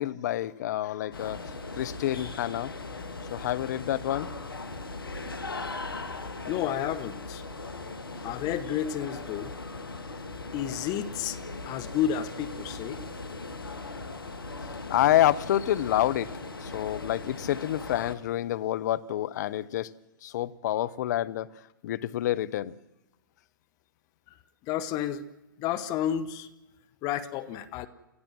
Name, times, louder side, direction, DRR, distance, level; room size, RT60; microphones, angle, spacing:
voice 1, 0.0-2.7 3.3-4.4 14.6-19.9 20.2-21.5 21.8-22.8, left 13 dB, 55° left, 0.8 m, -28 dB
sound 1, 1.1-18.2, left 3 dB, 85° left, 1.9 m, -39 dB
voice 2, 6.5-7.4 8.2-9.5 10.5-11.4 11.6-13.0 24.6-25.2 25.6-26.5 27.0-27.9, left 10 dB, 35° left, 1.2 m, -31 dB
29.5 x 15.5 x 6.1 m
figure-of-eight pair, 115°, 11 cm